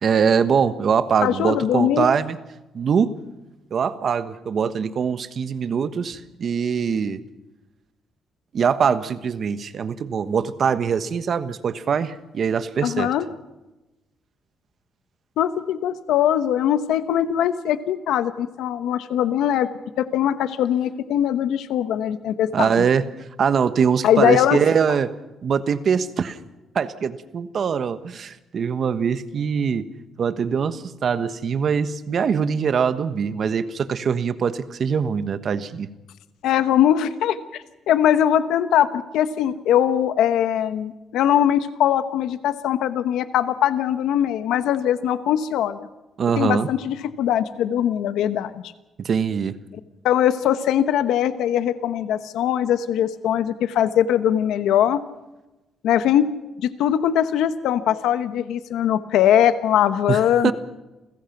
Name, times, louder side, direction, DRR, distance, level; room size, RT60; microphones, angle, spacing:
voice 1, 0.0-2.4 2.7-3.1 3.7-7.2 8.5-13.1 22.5-23.0 23.4-25.1 25.4-26.4 26.7-29.9 30.2-35.9 46.2-46.7 49.0-49.5 60.1-60.5, right 6 dB, 55° right, 12 dB, 1.3 m, -22 dB
voice 2, 1.2-2.1 12.8-13.2 15.4-19.7 20.0-22.8 24.0-24.6 36.4-45.8 46.4-48.5 50.0-55.0 55.8-56.3 56.6-60.5, left 10 dB, 85° left, 12 dB, 1.0 m, -21 dB
28.5 x 16.0 x 6.0 m, 1.0 s
cardioid pair, 90°, 0 cm